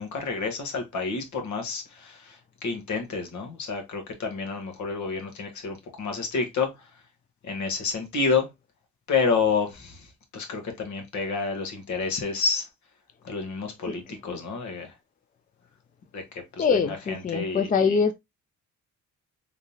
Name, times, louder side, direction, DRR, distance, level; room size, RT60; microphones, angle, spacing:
voice 1, 0.0-6.7 7.4-8.5 9.1-10.1 10.3-12.7 13.2-14.9 16.1-16.8 17.1-18.0, left 5 dB, 70° left, 1.4 m, -29 dB
voice 2, 16.6-18.1, left 5 dB, 30° left, 0.4 m, -24 dB
3.7 x 3.3 x 2.7 m
cardioid pair, 90°, 30 cm